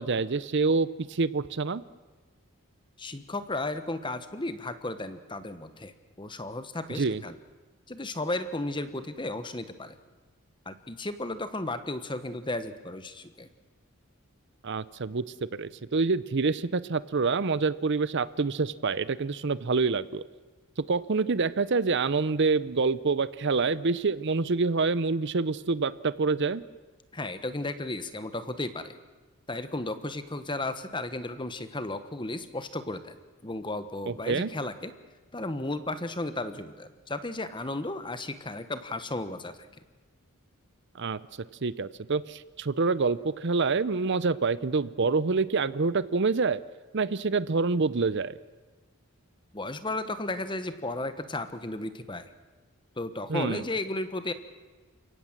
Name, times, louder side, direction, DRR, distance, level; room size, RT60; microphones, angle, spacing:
voice 1, 0.0-1.8 7.0-7.2 14.6-15.2 15.5-20.2 20.9-26.6 34.1-34.5 40.9-41.2 41.6-46.6 46.9-48.4 53.3-53.6, right 4 dB, 55° right, 17 dB, 0.6 m, -27 dB
voice 2, 3.0-7.4 7.9-10.0 10.6-13.5 27.1-29.0 29.5-33.2 33.4-34.9 35.3-39.7 49.5-52.3 53.0-54.3, left 2 dB, 20° left, 11 dB, 1.2 m, -34 dB
29.5 x 17.5 x 7.5 m, 1.3 s
head